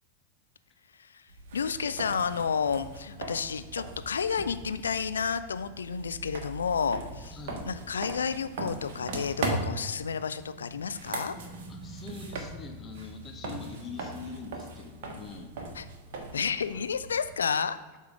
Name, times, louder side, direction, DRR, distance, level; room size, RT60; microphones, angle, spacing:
voice 1, 0.9-7.4 7.7-11.3 15.7-15.8 16.3-17.8, left 6 dB, 70° left, 12 dB, 0.3 m, -31 dB
sound 1, 1.3-17.4, right 2 dB, 50° right, 1.2 m, -39 dB
voice 2, 7.3-7.7 11.7-15.5 16.2-16.3 16.7-16.8, left 4 dB, 25° left, 5 dB, 0.9 m, -43 dB
7.9 x 3.7 x 4.9 m, 1.3 s
figure-of-eight pair, 90°, 0 cm